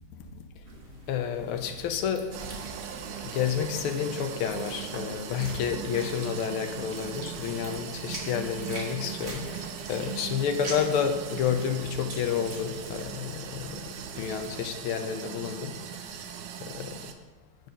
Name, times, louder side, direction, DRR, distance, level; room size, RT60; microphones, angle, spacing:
sound 1, 0.7-14.5, right 2 dB, 35° right, 1.4 m, -44 dB
voice 1, 1.1-2.3 3.2-15.8 16.6-17.0, left 8 dB, 85° left, 6 dB, 1.6 m, -30 dB
sound 2, 2.3-17.1, right 8 dB, 70° right, 1.1 m, -39 dB
6.6 x 6.1 x 5.2 m, 1.2 s
omnidirectional pair, 2.3 m